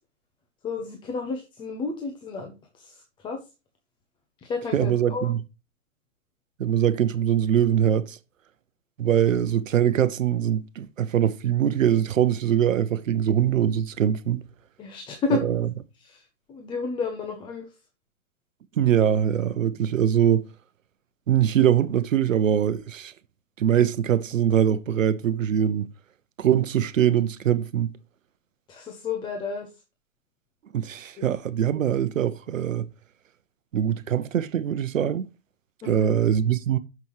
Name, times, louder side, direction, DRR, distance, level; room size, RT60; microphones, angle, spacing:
voice 1, 0.6-3.4 4.4-5.3 14.8-15.4 16.0-16.2 16.5-17.7 28.7-29.7 31.2-31.3 35.8-36.1, left 4 dB, 10° left, 0.9 m, -31 dB
voice 2, 4.7-5.4 6.6-8.2 9.0-14.4 15.3-15.7 18.8-20.5 21.3-23.1 23.6-25.9 26.4-27.9 30.7-32.9 33.7-35.3 35.8-36.8, right 9 dB, 80° right, 0.8 m, -22 dB
11.5 x 6.0 x 3.1 m
hypercardioid pair, 145°, 38 cm